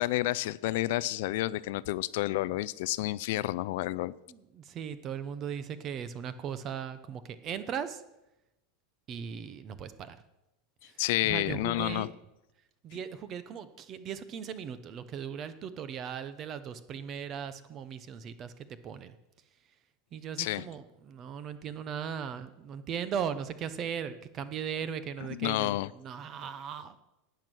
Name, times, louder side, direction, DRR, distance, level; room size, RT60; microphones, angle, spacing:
voice 1, 0.0-4.1 11.0-12.1 20.4-20.7 25.3-25.9, left 17 dB, 55° left, 18 dB, 0.3 m, -30 dB
voice 2, 4.3-8.0 9.1-10.2 10.8-12.1 12.8-19.2 20.1-27.0, right 8 dB, 25° right, 13 dB, 0.7 m, -38 dB
11.5 x 9.2 x 6.1 m, 0.93 s
supercardioid pair, 175°, 0 cm